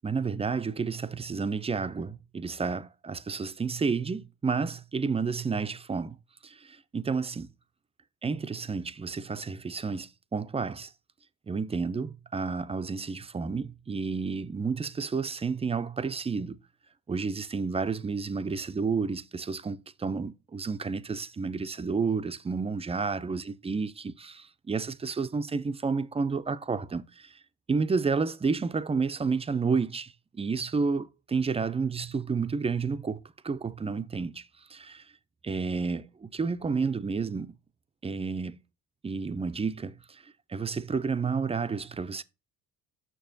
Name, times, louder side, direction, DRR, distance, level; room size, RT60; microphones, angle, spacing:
voice 1, 0.0-6.2 6.4-7.5 8.2-10.9 11.5-16.6 17.1-27.4 27.7-35.0 35.4-37.5 38.0-38.6 39.0-42.2, right 5 dB, 15° right, 0.3 m, -31 dB
6.7 x 6.3 x 2.6 m
cardioid pair, 105°, 38 cm